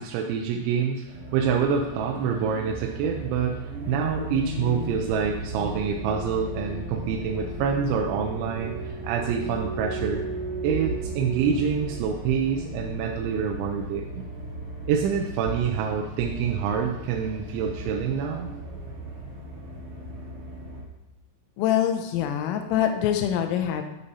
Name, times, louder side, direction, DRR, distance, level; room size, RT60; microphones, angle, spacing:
voice 1, 0.0-10.2 10.6-14.2 14.9-18.5, right 7 dB, 80° right, 2 dB, 2.9 m, -27 dB
sound 1, 1.0-20.8, right 1 dB, 40° right, 1.3 m, -35 dB
voice 2, 21.6-23.9, left 10 dB, 90° left, 6 dB, 3.3 m, -24 dB
13.5 x 5.6 x 4.1 m, 0.95 s
omnidirectional pair, 5.7 m